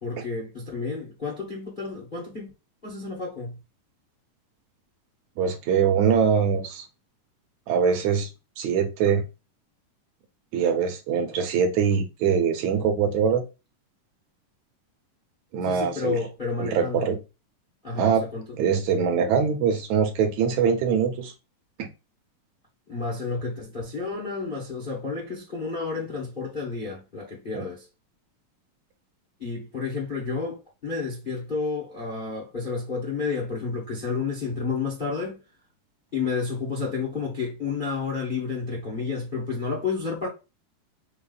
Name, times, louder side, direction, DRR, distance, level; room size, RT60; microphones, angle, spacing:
voice 1, 0.0-2.5 2.8-3.6 15.6-17.1 17.8-18.4 22.9-27.9 29.4-35.4 36.1-40.3, left 4 dB, 50° left, 0.5 m, -31 dB
voice 2, 5.4-6.9 7.7-8.3 8.6-9.2 10.5-13.4 15.5-16.2 16.6-17.2 18.0-18.2 18.6-21.3 21.8-21.9 27.5-27.6, right 7 dB, 70° right, 1.8 m, -23 dB
5.8 x 2.0 x 4.0 m
omnidirectional pair, 4.0 m